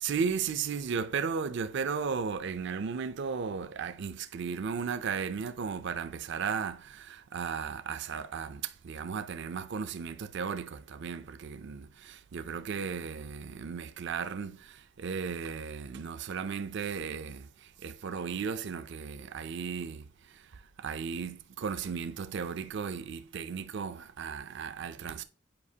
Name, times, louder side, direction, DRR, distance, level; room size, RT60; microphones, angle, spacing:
voice 1, 0.0-17.5 17.8-20.1 20.3-20.4 20.8-25.2, right 6 dB, 65° right, 0.4 m, -35 dB
8.6 x 4.9 x 2.8 m
head